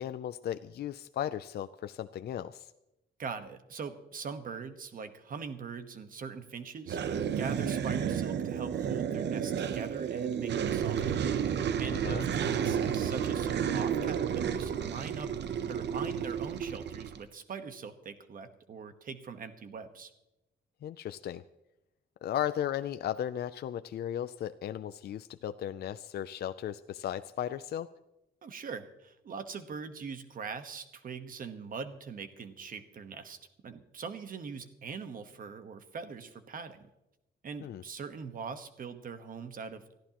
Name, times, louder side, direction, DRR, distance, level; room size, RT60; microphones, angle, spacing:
voice 1, 0.0-2.7 11.9-12.3 20.8-21.4 22.2-27.9 37.6-37.8, left 10 dB, 60° left, 11 dB, 0.4 m, -36 dB
voice 2, 3.2-11.5 11.8-15.3 15.7-20.1 28.4-33.4 33.6-36.9 37.4-39.9, right 5 dB, 45° right, 9 dB, 1.2 m, -42 dB
sound 1, 6.9-17.2, right 8 dB, 65° right, 0.8 m, -31 dB
24.0 x 14.5 x 3.0 m, 0.93 s
wide cardioid pair, 170°, 19 cm